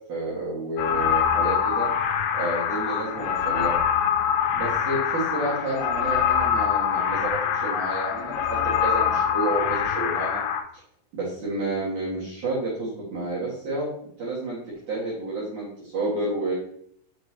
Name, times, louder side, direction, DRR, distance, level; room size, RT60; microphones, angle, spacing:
voice 1, 0.1-1.9 2.3-3.8 4.5-10.4 11.1-13.9 14.2-14.6 14.9-16.5, right 2 dB, 60° right, -7 dB, 2.1 m, -30 dB
sound 1, 0.8-10.6, left 8 dB, 85° left, 2.9 m, -24 dB
6.5 x 6.1 x 2.8 m, 0.68 s
omnidirectional pair, 5.8 m